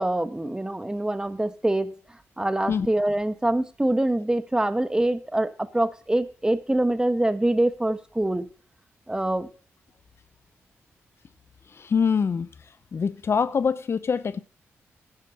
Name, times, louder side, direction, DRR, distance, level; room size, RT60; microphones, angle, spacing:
voice 1, 0.0-1.9 2.4-8.5 9.1-9.5, right 1 dB, 15° right, 1.3 m, -25 dB
voice 2, 11.7-12.5 12.9-14.4, left 6 dB, 50° left, 0.6 m, -24 dB
10.5 x 10.5 x 5.4 m
supercardioid pair, 55°, 5 cm